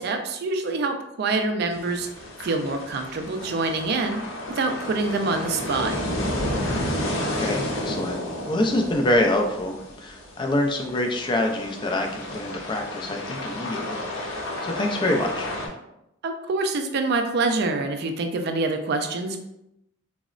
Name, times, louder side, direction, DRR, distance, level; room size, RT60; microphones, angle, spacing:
voice 1, 0.0-2.1 2.4-4.2 4.6-5.9 16.2-19.4, right 3 dB, 55° right, 6 dB, 0.4 m, -26 dB
sound 1, 1.7-15.7, left 1 dB, 80° left, 0.7 m, -32 dB
voice 2, 7.3-8.2 8.5-15.5, left 1 dB, 25° left, 3 dB, 0.3 m, -26 dB
3.8 x 2.0 x 2.4 m, 0.84 s
head